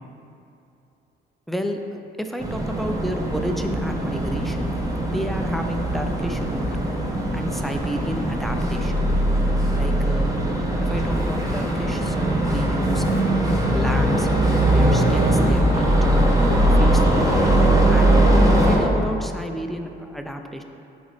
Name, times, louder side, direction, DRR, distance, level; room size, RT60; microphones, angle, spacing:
voice 1, 1.5-1.8 2.2-6.7 7.3-9.0 9.7-10.4 10.8-13.1 13.7-14.3 14.7-16.0 16.6-17.3 17.9-18.3 18.6-20.6, equal, ahead, 5 dB, 0.4 m, -31 dB
sound 1, 2.4-18.8, right 1 dB, 15° right, 0.9 m, -20 dB
8.0 x 4.2 x 3.2 m, 2.7 s
cardioid pair, 90°, 20 cm